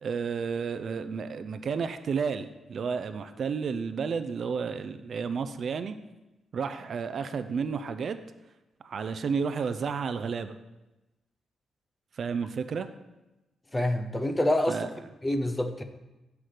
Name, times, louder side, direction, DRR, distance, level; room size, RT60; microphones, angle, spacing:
voice 1, 0.0-6.0 6.5-8.2 8.8-10.6 12.1-12.9 14.7-14.9, right 5 dB, 45° right, 11 dB, 0.4 m, -31 dB
voice 2, 13.7-14.8 15.2-15.8, left 1 dB, 10° left, 7 dB, 0.5 m, -26 dB
7.8 x 5.8 x 4.9 m, 1.0 s
wide cardioid pair, 165°, 0 cm